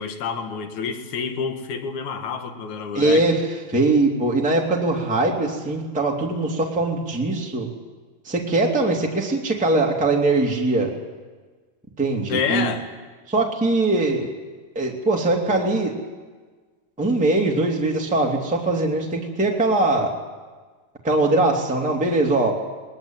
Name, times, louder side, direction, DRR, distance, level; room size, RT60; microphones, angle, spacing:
voice 1, 0.0-3.2 12.3-12.8, left 6 dB, 55° left, 6 dB, 2.8 m, -28 dB
voice 2, 2.9-7.7 8.2-10.9 12.0-12.7 13.3-14.3 14.7-15.9 17.0-20.1 21.0-22.5, right 2 dB, ahead, -1 dB, 2.0 m, -21 dB
21.0 x 21.0 x 9.1 m, 1.4 s
omnidirectional pair, 4.4 m